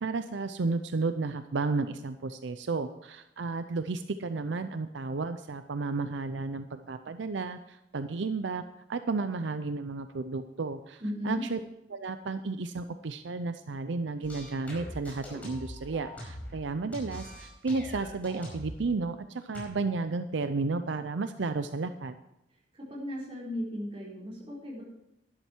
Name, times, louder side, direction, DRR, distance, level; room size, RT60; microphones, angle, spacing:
voice 1, 0.0-8.6 8.9-11.6 11.9-22.2, right 3 dB, 80° right, 10 dB, 0.5 m, -33 dB
voice 2, 11.0-11.4 22.7-24.8, equal, 30° right, -5 dB, 4.4 m, -36 dB
sound 1, 14.2-16.6 16.9-18.8 19.5-19.7, equal, 10° left, 5.0 m, -42 dB
12.0 x 11.5 x 4.5 m, 0.88 s
head